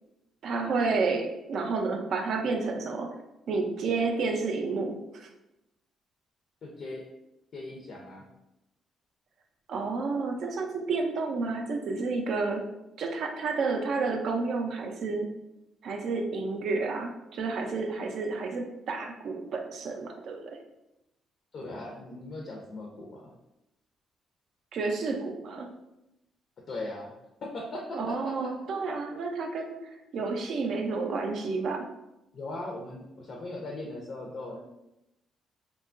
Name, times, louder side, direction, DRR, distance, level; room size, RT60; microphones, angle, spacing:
voice 1, 0.4-3.2 3.5-5.3 9.7-12.7 13.0-15.3 15.8-20.6 24.7-25.7 27.9-29.8 30.1-31.9, right 4 dB, 65° right, 4 dB, 0.4 m, -30 dB
voice 2, 6.6-7.1 7.5-8.3 21.5-23.3 26.7-27.1 27.4-28.5 32.3-34.6, left 2 dB, 55° left, 0 dB, 0.4 m, -39 dB
2.8 x 2.2 x 2.5 m, 0.91 s
cardioid pair, 90°, 0 cm